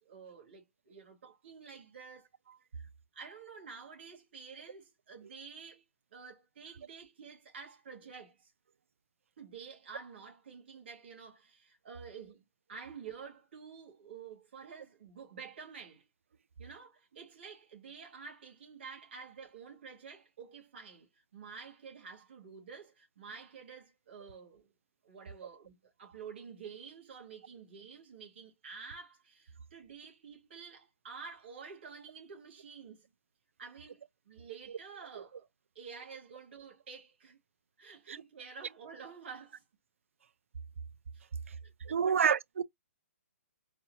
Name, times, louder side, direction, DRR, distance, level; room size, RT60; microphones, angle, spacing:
voice 1, 0.0-2.3 3.1-5.8 6.1-8.5 9.4-12.4 12.7-16.1 16.6-24.7 25.0-33.1 33.6-35.5 35.7-37.4 37.8-39.6 41.1-41.3 41.6-42.3, right 5 dB, 55° right, 2.2 m, -50 dB
voice 2, 41.9-42.6, right 7 dB, 70° right, 0.4 m, -28 dB
4.3 x 2.7 x 2.7 m
hypercardioid pair, 165°, 7 cm